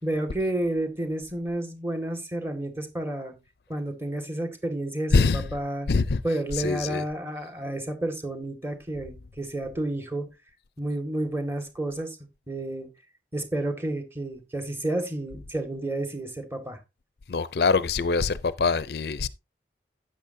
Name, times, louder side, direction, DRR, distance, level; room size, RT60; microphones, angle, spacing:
voice 1, 0.0-3.3 3.7-5.9 6.2-10.3 10.8-12.2 12.5-12.9 13.3-16.8, right 1 dB, 15° right, 1.9 m, -30 dB
voice 2, 5.1-5.5 5.9-6.2 6.5-7.0 17.3-19.3, left 4 dB, 60° left, 0.5 m, -24 dB
12.0 x 8.8 x 2.7 m
head